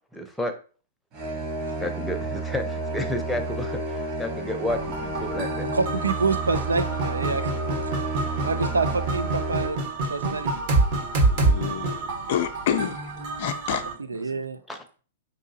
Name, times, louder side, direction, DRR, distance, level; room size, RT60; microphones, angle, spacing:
voice 1, 0.1-0.5 1.8-5.7 14.7-14.8, left 1 dB, ahead, 4 dB, 0.7 m, -31 dB
sound 1, 1.1-9.7, right 2 dB, 35° right, 1.3 m, -31 dB
sound 2, 4.7-13.9, right 3 dB, 50° right, 1.2 m, -27 dB
voice 2, 5.7-7.5 8.4-9.8 10.1-10.6 14.1-14.6, right 4 dB, 85° right, 10 dB, 0.4 m, -27 dB
voice 3, 11.2-13.1 13.4-13.8, left 10 dB, 55° left, 9 dB, 0.4 m, -29 dB
4.7 x 2.6 x 2.7 m, 0.38 s
figure-of-eight pair, 110°, 0 cm